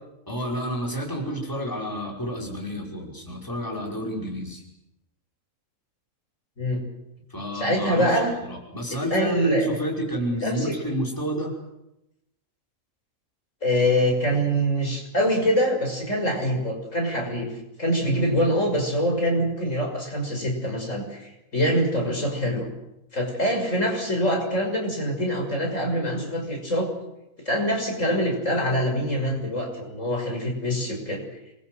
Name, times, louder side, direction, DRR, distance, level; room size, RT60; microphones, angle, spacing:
voice 1, 0.3-4.6 7.3-8.1 8.4-11.5, equal, 15° left, -1 dB, 5.6 m, -29 dB
voice 2, 7.5-8.3 9.1-9.7 10.4-10.8 13.6-17.5 17.8-22.7 23.1-26.9 27.4-31.2, equal, 65° left, 1 dB, 6.6 m, -24 dB
27.0 x 22.5 x 8.0 m, 0.89 s
omnidirectional pair, 1.4 m